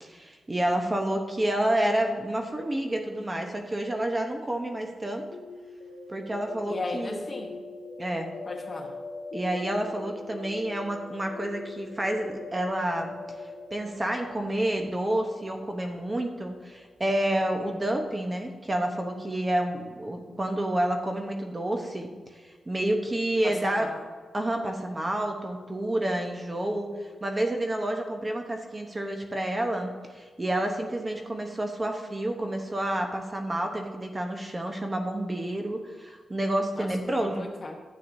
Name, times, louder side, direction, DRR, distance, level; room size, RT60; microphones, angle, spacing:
voice 1, 0.0-5.3 6.1-7.2 8.0-8.3 9.3-13.1 13.7-22.1 22.7-23.9 24.3-37.5, right 1 dB, 20° right, 3 dB, 0.9 m, -29 dB
sound 1, 5.3-17.0, left 3 dB, 65° left, 1.5 m, -42 dB
voice 2, 6.6-7.6 8.4-9.0 23.4-24.0 36.7-37.8, left 3 dB, 35° left, 2 dB, 1.2 m, -37 dB
11.5 x 8.7 x 2.7 m, 1.5 s
wide cardioid pair, 115°, 0 cm